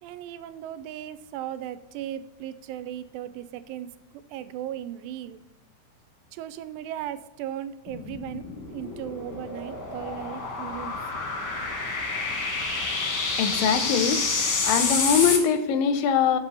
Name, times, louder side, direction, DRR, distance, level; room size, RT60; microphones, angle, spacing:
voice 1, 0.0-3.9 4.3-5.4 6.3-8.4 8.7-11.0, right 11 dB, 90° right, 13 dB, 2.3 m, -36 dB
sound 1, 7.9-15.4, left 4 dB, 50° left, 1.5 m, -28 dB
voice 2, 13.4-16.4, left 7 dB, 85° left, 10 dB, 2.4 m, -23 dB
7.0 x 4.4 x 6.8 m, 1.0 s
omnidirectional pair, 4.0 m